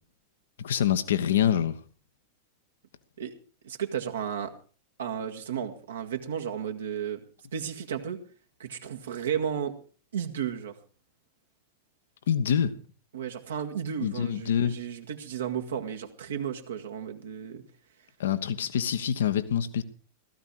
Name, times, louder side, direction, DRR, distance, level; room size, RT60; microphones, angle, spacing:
voice 1, 0.6-1.8 12.3-12.7 14.0-14.8 18.2-19.8, left 9 dB, 65° left, 1.3 m, -25 dB
voice 2, 3.6-4.5 5.0-7.2 7.5-8.2 8.6-9.8 10.1-10.8 13.1-17.6, right 8 dB, 65° right, 1.7 m, -33 dB
16.5 x 14.0 x 4.8 m
figure-of-eight pair, 90°, 0 cm